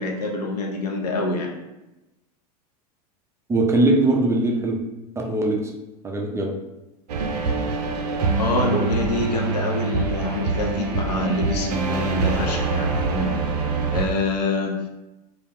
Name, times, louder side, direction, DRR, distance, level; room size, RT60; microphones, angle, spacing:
voice 1, 0.0-1.5 8.4-13.4 13.9-14.9, left 2 dB, 80° left, 1 dB, 0.6 m, -26 dB
voice 2, 3.5-4.8 5.2-5.7 6.0-6.6, right 2 dB, 15° right, 0 dB, 0.3 m, -21 dB
sound 1, 7.1-14.0, right 4 dB, 90° right, 0.4 m, -24 dB
2.4 x 2.1 x 3.3 m, 0.98 s
hypercardioid pair, 105°, 20 cm